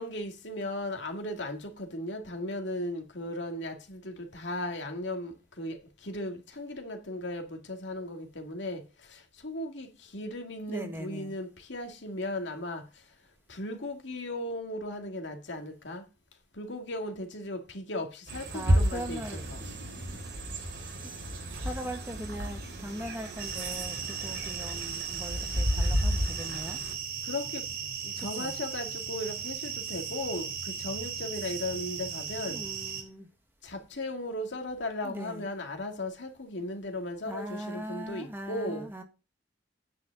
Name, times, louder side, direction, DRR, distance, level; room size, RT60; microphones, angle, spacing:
voice 1, 0.0-12.9 13.5-16.1 16.5-19.6 27.2-27.7 28.0-32.6 33.6-38.9, left 1 dB, 80° left, 2.2 m, -37 dB
voice 2, 10.7-11.3 18.5-19.6 21.0-21.1 21.5-26.8 28.2-28.5 32.5-33.3 35.0-35.5 37.2-39.0, equal, 10° right, 1.5 m, -40 dB
sound 1, 18.3-26.9, equal, 75° right, 3.8 m, -32 dB
sound 2, 23.4-33.0, right 6 dB, 55° right, 4.6 m, -37 dB
9.6 x 5.2 x 8.1 m
head